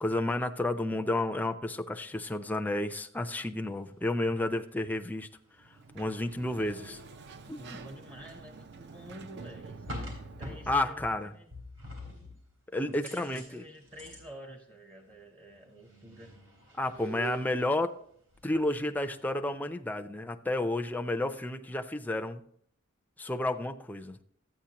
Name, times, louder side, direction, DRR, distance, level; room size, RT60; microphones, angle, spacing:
voice 1, 0.0-5.3 5.9-7.0 7.5-7.6 10.7-11.3 12.7-13.6 16.8-18.0 18.4-22.4 23.2-24.2, left 1 dB, 10° left, 0.4 m, -31 dB
sound 1, 3.6-3.8 4.7-4.9 5.2-7.0 9.4-11.2 11.5-12.5 12.9-14.3 15.1-15.2 15.4-17.8 18.0-18.9 19.2-19.4, right 1 dB, 80° right, 3.8 m, -45 dB
Sliding door, 5.6-10.9, right 4 dB, 55° right, 0.5 m, -48 dB
voice 2, 7.6-10.0 10.4-11.6 12.9-16.3, equal, 20° right, 0.7 m, -49 dB
13.0 x 8.9 x 2.9 m
head